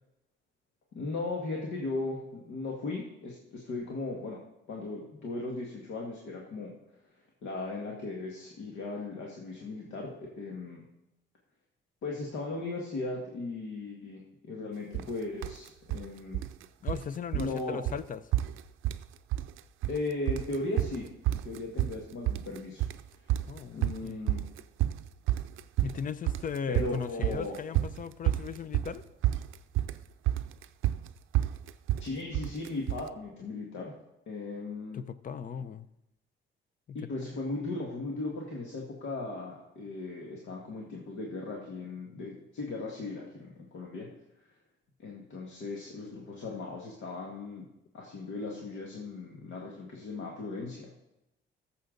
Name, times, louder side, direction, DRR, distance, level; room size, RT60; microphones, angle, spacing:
voice 1, 0.9-4.4 4.7-6.7 7.4-10.8 12.0-16.4 17.3-17.8 19.9-22.8 23.7-24.4 26.7-27.5 32.0-33.9 34.3-35.0 36.9-44.1 45.0-47.7 47.9-51.0, left 3 dB, 75° left, -1 dB, 1.8 m, -37 dB
sound 1, 14.9-15.1 15.4-16.1 16.3-17.1 17.3-17.6 17.9-18.0 18.3-19.1 19.3-20.0 20.3-33.1, right 14 dB, 90° right, 0.5 m, -30 dB
voice 2, 16.8-18.2 23.5-24.3 25.8-29.0 34.9-35.9 36.9-37.0, left 6 dB, 45° left, 15 dB, 0.6 m, -37 dB
14.0 x 7.0 x 3.9 m, 0.89 s
cardioid pair, 90°, 20 cm